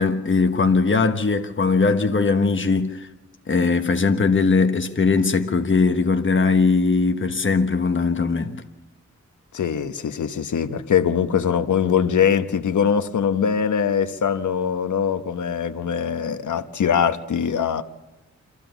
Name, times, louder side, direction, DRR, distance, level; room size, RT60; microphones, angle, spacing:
voice 1, 0.0-3.1 3.5-8.6, left 4 dB, 40° left, 1.3 m, -20 dB
voice 2, 9.5-17.8, left 7 dB, 90° left, 1.1 m, -22 dB
25.5 x 15.0 x 7.0 m
wide cardioid pair, 145°, 29 cm